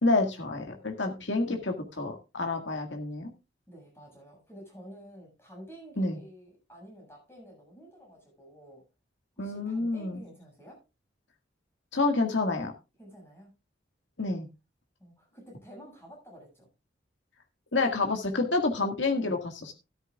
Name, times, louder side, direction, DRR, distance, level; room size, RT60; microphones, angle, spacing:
voice 1, 0.0-3.3 6.0-6.2 9.4-10.2 11.9-12.7 14.2-14.5 17.7-19.7, left 3 dB, 85° left, 4 dB, 1.9 m, -28 dB
voice 2, 3.7-8.8 9.4-10.8 13.0-13.5 15.0-16.7 19.1-19.3, equal, 15° left, -2 dB, 7.4 m, -50 dB
13.5 x 12.5 x 2.4 m, 0.27 s
head